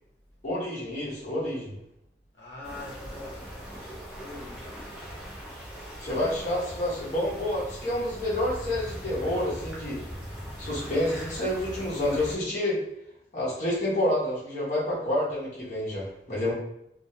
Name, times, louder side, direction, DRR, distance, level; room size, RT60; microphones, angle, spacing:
voice 1, 0.4-1.8 6.0-10.0 10.6-12.8 13.3-16.5, left 1 dB, 45° left, -8 dB, 0.7 m, -28 dB
voice 2, 2.4-3.9 4.2-4.7, left 2 dB, 75° left, -5 dB, 0.8 m, -43 dB
sound 1, 2.6-12.3, equal, 5° right, 0.6 m, -40 dB
2.3 x 2.1 x 2.8 m, 0.77 s
head